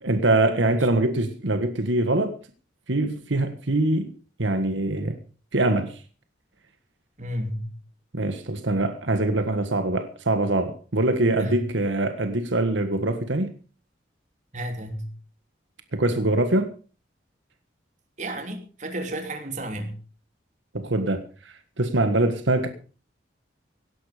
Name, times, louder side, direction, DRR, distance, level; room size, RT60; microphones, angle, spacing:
voice 1, 0.0-2.3 2.9-4.1 4.4-5.2 5.5-6.0 8.1-13.5 15.9-16.7 20.7-22.7, right 2 dB, 80° right, 1.6 m, -23 dB
voice 2, 7.2-7.7 11.4-11.6 14.5-15.1 18.2-20.0, right 1 dB, 40° right, 3.0 m, -32 dB
17.5 x 11.5 x 5.1 m
head